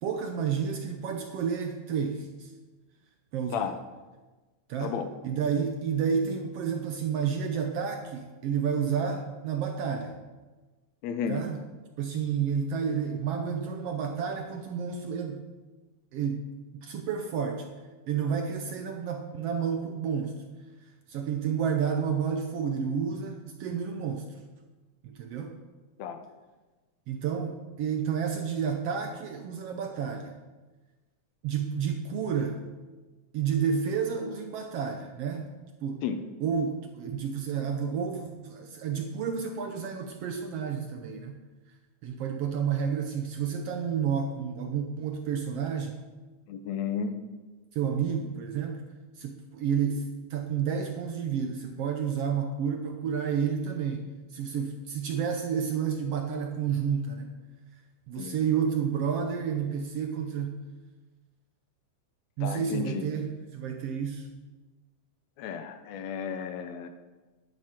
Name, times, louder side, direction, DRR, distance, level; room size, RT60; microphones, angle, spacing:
voice 1, 0.0-2.5 3.3-3.7 4.7-4.9 5.2-10.1 11.3-11.6 12.0-15.4 16.1-16.4 16.7-17.7 18.1-20.3 21.1-24.3 25.0-25.5 27.1-30.3 31.4-32.6 33.3-35.5 35.8-36.0 36.4-41.4 42.0-46.0 47.7-48.8 49.2-54.0 54.3-57.3 58.1-60.6 62.4-64.3, right 7 dB, 70° right, 4 dB, 1.6 m, -30 dB
voice 2, 4.8-5.1 11.0-11.5 26.0-26.2 36.0-36.2 46.5-47.2 58.2-58.4 62.4-63.1 65.4-66.9, left 7 dB, 75° left, 9 dB, 1.9 m, -33 dB
11.0 x 9.8 x 4.4 m, 1.2 s
omnidirectional pair, 3.4 m